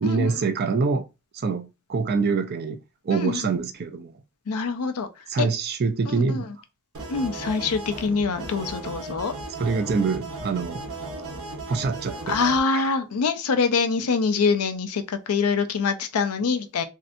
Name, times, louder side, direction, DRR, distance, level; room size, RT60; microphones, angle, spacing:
voice 1, 0.0-1.1 1.3-2.8 3.0-4.1 5.3-6.5 9.6-10.8 11.7-12.4 12.7-12.8, right 4 dB, 45° right, 0.4 m, -25 dB
voice 2, 3.1-3.5 4.5-5.1 5.4-5.5 6.1-6.5 7.1-9.3 12.3-16.8, left 5 dB, 90° left, 0.5 m, -25 dB
sound 1, 6.9-12.6, right 2 dB, 75° right, 0.8 m, -36 dB
3.2 x 2.7 x 2.6 m
head